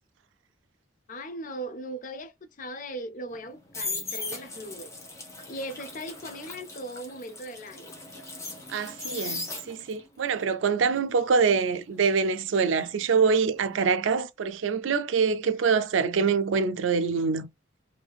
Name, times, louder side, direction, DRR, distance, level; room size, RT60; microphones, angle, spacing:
voice 1, 1.1-4.9 5.5-7.9, right 1 dB, 40° left, 0.5 m, -39 dB
sound 1, 3.3-10.1 10.4-13.3 13.6-13.9, left 3 dB, 15° left, 0.8 m, -38 dB
voice 2, 8.7-17.5, right 5 dB, 80° right, 0.4 m, -25 dB
3.3 x 2.7 x 2.3 m
head